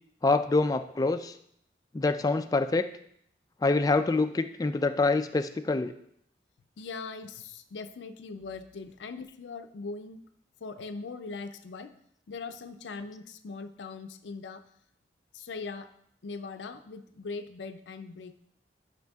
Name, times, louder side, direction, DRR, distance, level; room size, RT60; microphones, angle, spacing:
voice 1, 0.2-1.3 1.9-2.9 3.6-5.9, left 3 dB, 20° left, 8 dB, 0.3 m, -26 dB
voice 2, 6.8-10.2 10.6-11.9 12.3-14.6 15.3-15.9 16.2-18.4, left 4 dB, 90° left, 8 dB, 0.4 m, -40 dB
10.5 x 5.8 x 2.3 m, 0.70 s
head